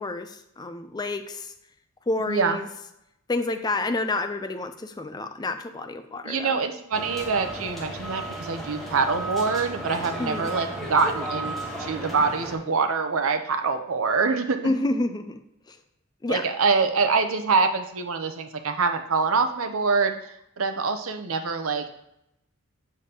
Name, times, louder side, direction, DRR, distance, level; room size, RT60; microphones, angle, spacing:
voice 1, 0.0-1.5 2.1-2.7 3.3-6.6 10.2-10.5 14.6-15.4 15.7-15.8 16.2-16.5, left 2 dB, 20° left, 9 dB, 0.3 m, -29 dB
voice 2, 2.3-2.6 6.2-14.7 16.3-21.9, right 4 dB, 75° right, 7 dB, 0.7 m, -25 dB
sound 1, 6.9-12.6, right 1 dB, ahead, 1.2 m, -34 dB
7.3 x 6.6 x 2.9 m, 0.80 s
head